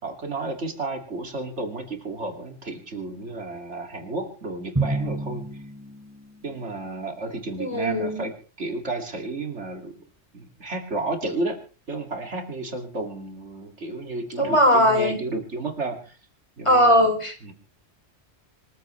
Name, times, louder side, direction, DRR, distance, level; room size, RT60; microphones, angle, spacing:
voice 1, 0.0-5.6 6.4-10.0 10.3-11.6 11.9-16.2 16.6-17.1 17.4-17.5, right 2 dB, 75° right, 5 dB, 2.7 m, -32 dB
Drum, 4.8-6.5, right 2 dB, 15° right, 2.2 m, -29 dB
voice 2, 7.6-8.2 14.4-15.2 16.6-17.3, equal, 25° left, 5 dB, 3.5 m, -19 dB
25.5 x 14.5 x 3.2 m, 0.35 s
omnidirectional pair, 1.2 m